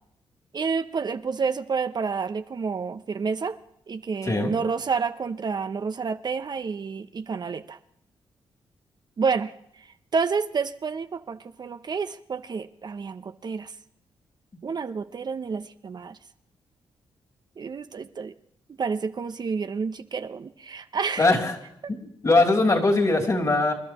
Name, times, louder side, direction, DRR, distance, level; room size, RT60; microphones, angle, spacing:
voice 1, 0.5-3.6 3.9-7.8 9.2-13.8 14.6-16.2 17.6-18.3 18.8-21.3, right 5 dB, 45° right, 11 dB, 0.6 m, -29 dB
voice 2, 21.2-21.5 21.9-23.7, left 2 dB, 35° left, 2 dB, 2.9 m, -21 dB
28.0 x 11.5 x 3.0 m, 0.73 s
cardioid pair, 70°, 10 cm